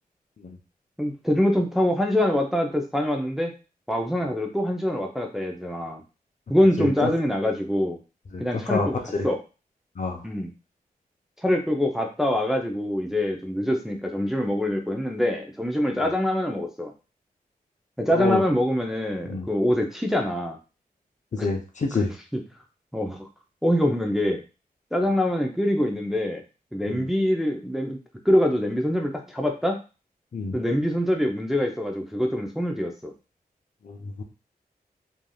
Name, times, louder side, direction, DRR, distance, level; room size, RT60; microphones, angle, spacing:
voice 1, 1.0-3.5 3.9-6.0 6.5-8.0 8.4-9.0 9.2-9.4 10.2-10.5 11.4-16.9 18.0-20.6 21.4-21.5 22.9-23.3 23.6-24.4 24.9-26.4 26.7-28.0 28.2-29.8 30.5-33.1, left 1 dB, ahead, 1 dB, 0.6 m, -24 dB
voice 2, 6.8-7.1 8.3-9.3 10.0-10.3 15.9-16.1 18.1-18.4 19.2-19.5 21.3-22.1 25.0-25.1 26.9-27.1 30.3-30.6 33.8-34.2, left 3 dB, 50° left, 3 dB, 0.7 m, -28 dB
3.2 x 2.6 x 2.3 m, 0.32 s
cardioid pair, 75°, 16 cm